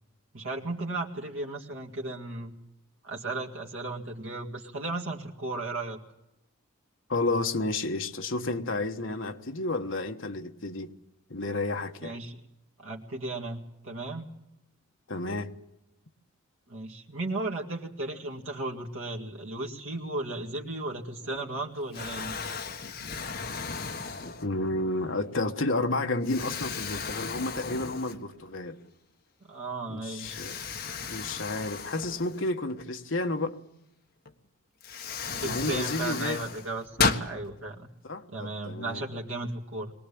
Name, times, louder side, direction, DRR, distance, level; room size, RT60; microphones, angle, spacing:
voice 1, 0.3-2.5 3.0-6.0 12.0-12.4 12.8-14.3 16.7-22.4 29.4-30.3 35.3-37.9 38.3-39.9, right 2 dB, 65° right, 2.2 m, -35 dB
voice 2, 7.1-10.9 11.3-12.2 15.1-15.5 24.4-28.8 29.9-30.6 31.1-33.6 35.4-36.4 38.0-39.0, left 2 dB, 60° left, 1.3 m, -31 dB
Explosion, 21.2-21.6 21.9-24.8 25.4-25.5 26.2-28.5 28.9-29.0 30.2-32.8 34.3-34.4 34.8-37.3, left 5 dB, 45° left, 1.4 m, -34 dB
22.5 x 19.0 x 8.6 m
head